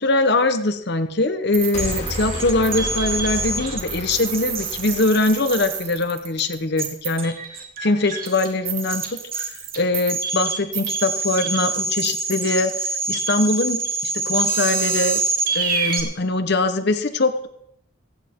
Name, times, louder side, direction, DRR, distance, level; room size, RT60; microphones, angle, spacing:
voice 1, 0.0-7.4 7.8-9.5 9.8-15.2 15.5-17.5, left 2 dB, 55° left, 9 dB, 1.0 m, -22 dB
sound 1, 1.5-16.0, right 4 dB, 45° right, 3.1 m, -26 dB
sound 2, 1.7-6.0, left 1 dB, 30° left, 2.3 m, -32 dB
26.5 x 10.0 x 3.7 m, 0.74 s
head